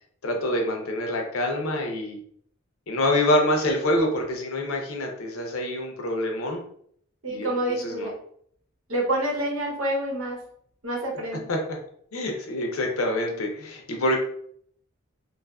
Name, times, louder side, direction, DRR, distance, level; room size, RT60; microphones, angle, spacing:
voice 1, 0.2-2.2 2.9-6.6 7.3-8.1 11.5-11.8 12.1-14.2, left 1 dB, 90° left, 2 dB, 0.6 m, -26 dB
voice 2, 7.2-8.1 8.9-10.4 10.8-11.4, right 1 dB, 75° right, -1 dB, 0.9 m, -27 dB
2.6 x 2.4 x 2.3 m, 0.64 s
head